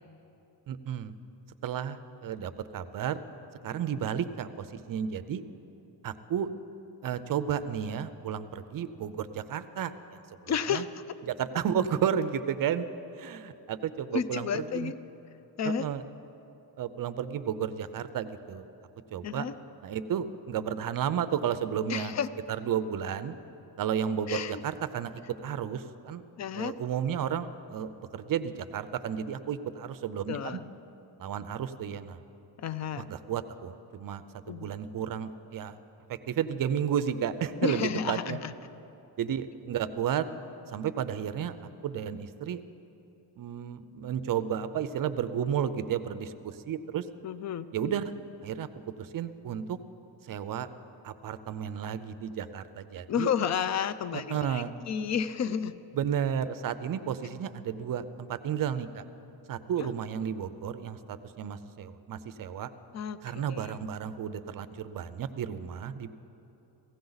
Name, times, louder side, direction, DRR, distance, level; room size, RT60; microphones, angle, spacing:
voice 1, 0.7-1.1 1.6-3.2 3.6-5.4 6.0-6.5 7.0-10.8 11.3-12.8 13.1-14.9 15.6-16.0 16.8-18.6 19.1-19.5 19.8-22.1 22.5-23.3 23.8-26.3 26.5-30.6 31.2-32.2 33.0-35.8 36.1-38.4 39.2-40.3 40.7-42.6 43.4-47.1 47.7-48.1 48.4-49.8 50.2-50.7 51.0-53.3 54.1-54.7 55.9-59.0 59.5-62.7 63.2-66.1, right 8 dB, 55° right, 12 dB, 0.6 m, -32 dB
voice 2, 10.5-10.9 14.1-15.0 15.6-15.9 19.2-19.5 21.9-22.3 24.3-24.6 26.4-26.7 30.3-30.7 32.6-33.1 34.5-34.7 37.6-38.5 47.2-47.7 53.1-55.7 59.8-59.9 62.9-63.7, left 7 dB, 40° left, 14 dB, 0.4 m, -31 dB
17.0 x 15.5 x 4.0 m, 2.9 s
wide cardioid pair, 170°, 42 cm